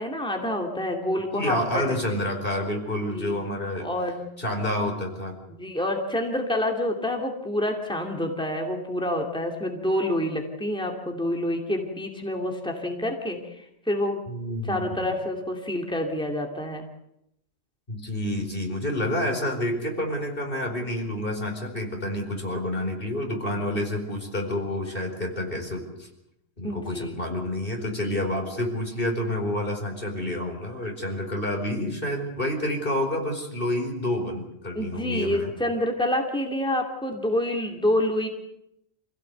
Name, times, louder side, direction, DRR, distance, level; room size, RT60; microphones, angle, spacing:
voice 1, 0.0-2.2 3.1-3.4 3.8-4.3 5.5-14.2 14.6-16.9 26.6-27.1 34.7-38.3, left 1 dB, 5° left, 1 dB, 2.6 m, -28 dB
voice 2, 1.3-3.9 4.4-5.4 14.3-15.1 17.9-26.1 26.6-35.5, left 1 dB, 60° left, 2 dB, 4.9 m, -29 dB
27.0 x 16.5 x 8.0 m, 0.82 s
omnidirectional pair, 1.1 m